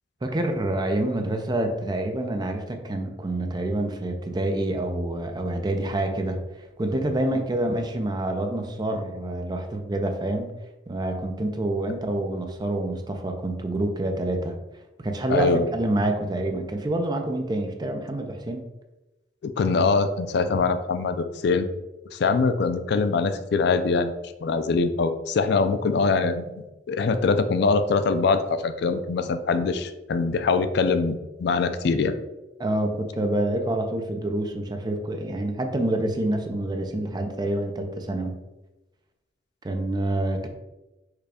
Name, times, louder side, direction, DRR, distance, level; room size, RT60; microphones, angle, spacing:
voice 1, 0.2-6.4 6.8-10.5 10.9-14.6 15.0-18.7 32.6-38.4 39.6-40.5, right 1 dB, 25° right, 5 dB, 0.5 m, -27 dB
voice 2, 15.3-15.7 19.4-21.7 22.1-26.5 26.9-32.1, left 4 dB, 65° left, 10 dB, 0.4 m, -23 dB
4.8 x 2.3 x 4.8 m, 1.0 s
head